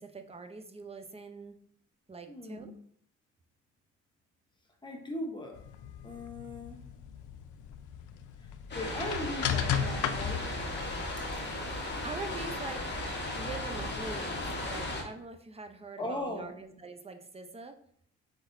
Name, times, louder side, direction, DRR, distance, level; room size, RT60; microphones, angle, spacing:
voice 1, 0.0-1.6 2.1-2.7 12.0-12.8 13.3-17.7, right 3 dB, 20° right, 6 dB, 0.6 m, -43 dB
voice 2, 2.3-2.8 4.8-5.6 6.0-6.8 8.7-10.5 11.5-11.6 16.0-16.5, left 1 dB, 15° left, 2 dB, 1.0 m, -38 dB
sound 1, 5.6-10.9, left 8 dB, 80° left, 0.5 m, -36 dB
sound 2, 8.7-15.0, left 2 dB, 35° left, 1.1 m, -36 dB
5.1 x 4.0 x 2.6 m, 0.63 s
cardioid pair, 90°, 30 cm